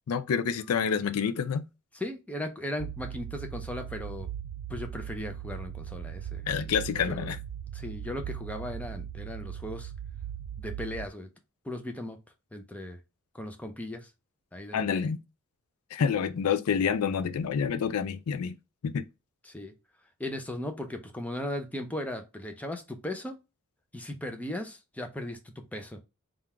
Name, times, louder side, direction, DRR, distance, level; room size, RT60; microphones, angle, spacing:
voice 1, 0.1-1.6 6.5-7.4 14.7-15.2 15.9-18.6 18.8-19.1, left 7 dB, 80° left, 0.4 m, -28 dB
voice 2, 1.9-4.3 4.7-6.7 7.1-7.3 7.7-9.9 10.6-11.3 11.6-12.2 12.5-13.0 13.3-14.1 14.5-15.1 19.4-19.7 20.2-23.4 23.9-25.4 25.7-26.0, left 1 dB, 5° left, 0.6 m, -37 dB
sound 1, 2.8-11.1, right 9 dB, 85° right, 0.3 m, -39 dB
3.7 x 2.4 x 4.3 m
head